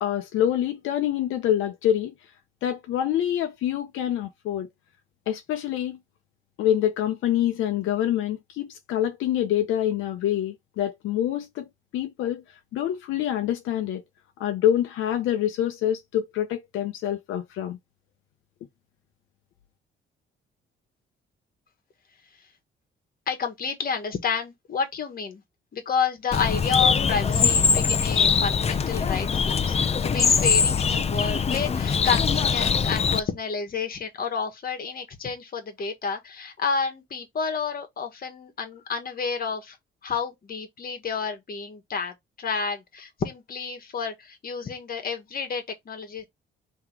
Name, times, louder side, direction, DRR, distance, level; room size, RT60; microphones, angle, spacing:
voice 1, 0.0-2.1 2.6-4.7 5.3-6.0 6.6-11.7 11.9-12.4 12.7-14.0 14.4-17.8, left 11 dB, 85° left, 0.7 m, -26 dB
voice 2, 23.3-25.4 25.7-39.8 40.0-46.2, left 5 dB, 50° left, 1.5 m, -30 dB
Bird, 26.3-33.2, left 6 dB, 30° left, 0.6 m, -22 dB
3.8 x 3.1 x 4.6 m
cardioid pair, 90°, 20 cm